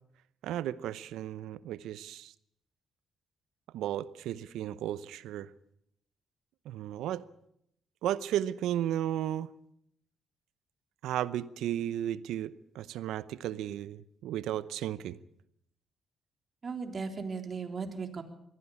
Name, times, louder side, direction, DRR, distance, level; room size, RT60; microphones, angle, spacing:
voice 1, 0.4-2.3 3.7-5.5 6.6-7.3 8.0-9.5 11.0-15.2, right 11 dB, 80° right, 17 dB, 0.8 m, -34 dB
voice 2, 16.6-18.2, right 5 dB, 45° right, 5 dB, 3.6 m, -36 dB
22.0 x 15.5 x 8.6 m, 0.76 s
supercardioid pair, 60°, 0 cm